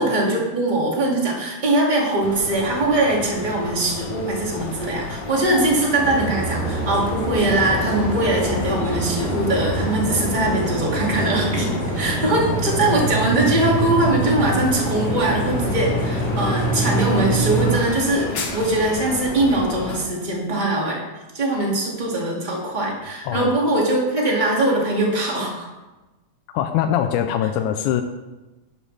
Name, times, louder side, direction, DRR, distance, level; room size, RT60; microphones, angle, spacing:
voice 1, 0.0-11.7 11.9-21.0 21.3-25.7, right 1 dB, 15° right, -2 dB, 2.1 m, -21 dB
sound 1, 2.2-20.1, left 3 dB, 60° left, 1.2 m, -32 dB
sound 2, 6.0-17.8, right 2 dB, 90° right, 5.7 m, -25 dB
voice 2, 23.2-23.6 26.5-28.0, left 10 dB, 85° left, 7 dB, 2.1 m, -22 dB
11.5 x 11.5 x 3.4 m, 1.1 s
omnidirectional pair, 3.4 m